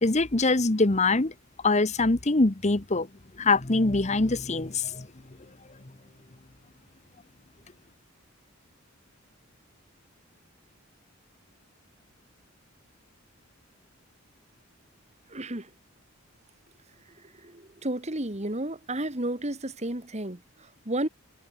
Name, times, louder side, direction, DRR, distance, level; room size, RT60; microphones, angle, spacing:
voice 1, 0.0-1.3 1.6-3.1 3.4-5.1, left 3 dB, 30° left, 1.0 m, -23 dB
voice 2, 15.3-15.7 17.3-21.1, right 1 dB, 30° right, 2.2 m, -32 dB
head